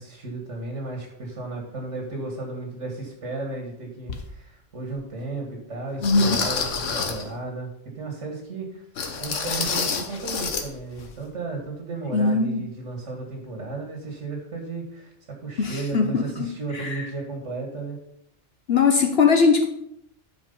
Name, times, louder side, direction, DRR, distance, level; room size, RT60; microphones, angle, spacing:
voice 1, 0.0-8.8 9.2-15.1 15.4-18.0, right 3 dB, 80° right, 2 dB, 2.0 m, -34 dB
sound 1, 4.1-4.2 4.9-5.0 6.0-7.3 9.0-10.7 10.9-11.1 11.6-11.7, left 5 dB, 80° left, 1.4 m, -28 dB
voice 2, 6.0-6.4 12.1-12.6 15.6-17.1 18.7-19.7, left 4 dB, 60° left, 4 dB, 1.0 m, -21 dB
10.5 x 4.9 x 5.4 m, 0.76 s
omnidirectional pair, 1.3 m